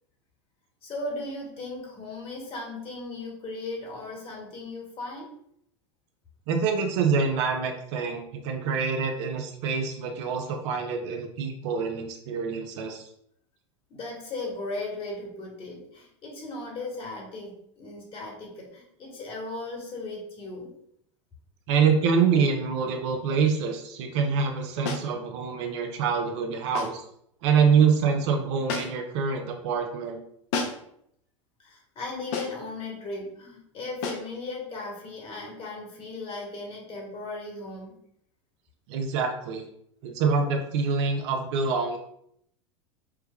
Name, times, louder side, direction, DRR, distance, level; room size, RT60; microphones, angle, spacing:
voice 1, 0.8-5.3 13.9-20.7 31.6-37.9, left 2 dB, 35° left, -2 dB, 1.3 m, -37 dB
voice 2, 6.5-13.1 21.7-27.0 27.4-30.2 38.9-39.7 40.0-42.0, right 5 dB, 60° right, 4 dB, 0.6 m, -25 dB
sound 1, 24.8-25.1 26.7-27.0 28.7-29.1 30.5-30.9 32.3-32.7 34.0-34.3, left 4 dB, 60° left, 0.7 m, -32 dB
4.5 x 2.2 x 2.2 m, 0.71 s
hypercardioid pair, 95°, 16 cm